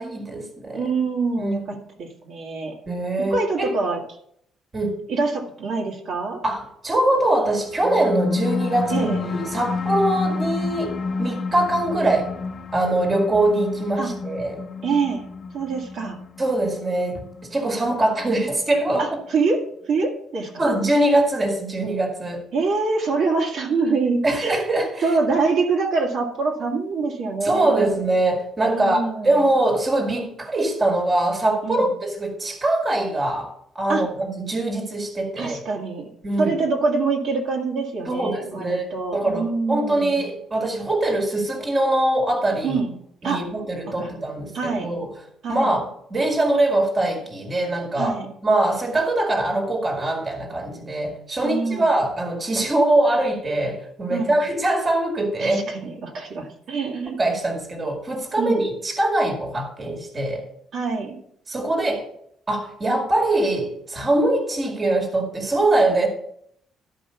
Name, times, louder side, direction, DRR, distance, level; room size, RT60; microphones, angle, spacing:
voice 1, 0.0-0.9 1.4-1.6 2.9-3.7 4.7-5.0 6.4-10.9 11.2-12.3 12.7-14.6 16.4-19.1 20.6-22.5 24.2-25.1 27.4-35.6 36.2-36.5 38.1-42.8 43.2-45.1 45.5-48.1 48.4-55.6 57.2-60.5 61.5-62.1 62.5-66.1, right 1 dB, 20° right, 2 dB, 2.0 m, -23 dB
voice 2, 0.7-2.8 3.2-4.0 5.1-6.4 8.9-9.2 14.0-14.1 14.8-15.3 15.5-16.2 19.0-20.7 22.5-24.6 25.0-27.9 28.7-29.4 31.6-31.9 33.9-34.0 35.4-36.1 36.4-40.2 42.6-42.9 43.2-43.5 43.9-44.1 44.5-44.9 45.4-45.8 48.0-48.3 51.4-51.9 54.1-54.4 55.4-57.2 58.4-58.7 60.7-61.2, right 4 dB, 55° right, 0 dB, 1.8 m, -25 dB
sound 1, 7.7-18.6, left 4 dB, 35° left, 1.0 m, -29 dB
12.5 x 5.3 x 5.6 m, 0.69 s
cardioid pair, 160°, 0 cm